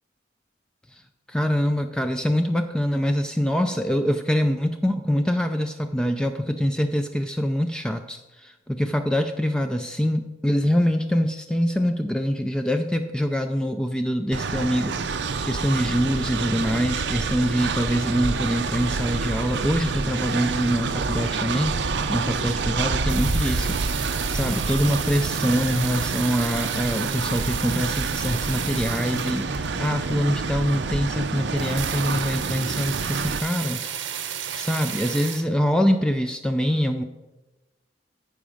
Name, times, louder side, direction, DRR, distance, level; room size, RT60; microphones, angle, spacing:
voice 1, 1.3-21.8 22.1-33.8 34.6-37.0, equal, 5° left, 6 dB, 0.4 m, -24 dB
Train, 14.3-33.4, right 4 dB, 70° right, 0.6 m, -28 dB
sound 1, 23.1-29.9 30.5-30.6 30.8-30.9 31.1-31.2 31.4-35.4, right 9 dB, 90° right, 1.0 m, -33 dB
14.0 x 5.1 x 5.0 m, 1.1 s
head